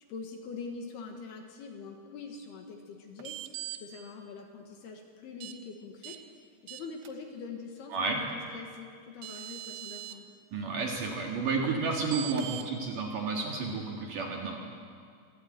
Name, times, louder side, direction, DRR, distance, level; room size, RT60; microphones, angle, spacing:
voice 1, 0.1-3.4 3.7-10.3, left 5 dB, 65° left, 3 dB, 3.2 m, -44 dB
sound 1, 3.2-3.8 5.4-5.5 6.0-6.2 6.7-7.1 8.7-8.8 9.2-10.2 12.1-12.7, right 14 dB, 70° right, 2.6 m, -40 dB
voice 2, 10.5-14.6, right 4 dB, 55° right, -1 dB, 3.1 m, -31 dB
25.5 x 13.5 x 8.8 m, 2.2 s
omnidirectional pair, 5.4 m